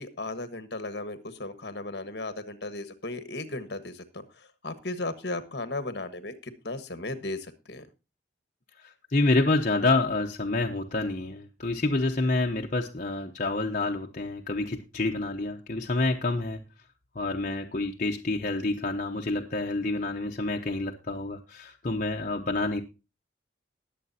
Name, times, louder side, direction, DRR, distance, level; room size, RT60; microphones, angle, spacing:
voice 1, 0.0-7.8, left 2 dB, 60° left, 10 dB, 1.4 m, -36 dB
voice 2, 8.8-16.6 17.1-22.8, left 2 dB, 45° left, 1 dB, 0.9 m, -28 dB
20.5 x 7.6 x 2.7 m, 0.29 s
head